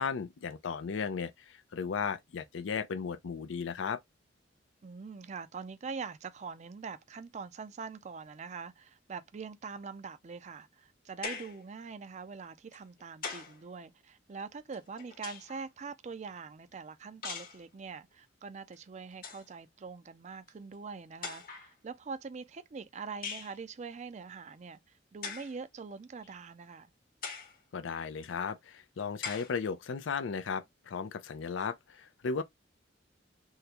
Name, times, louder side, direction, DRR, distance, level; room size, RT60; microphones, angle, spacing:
voice 1, 0.0-4.0 27.7-32.4, left 5 dB, 85° left, 0.5 m, -35 dB
voice 2, 4.8-26.9, right 5 dB, 40° right, 0.4 m, -43 dB
sound 1, 11.2-11.6 12.7-13.6 14.7-15.6 17.2-17.6 18.7-18.8 19.1-19.5 20.5-20.6 21.2-21.7 23.2-23.6 25.2-25.6 26.2-26.3 27.2-27.6 28.2-28.3 29.2-29.6, left 5 dB, 50° left, 1.0 m, -41 dB
3.6 x 2.1 x 2.8 m
head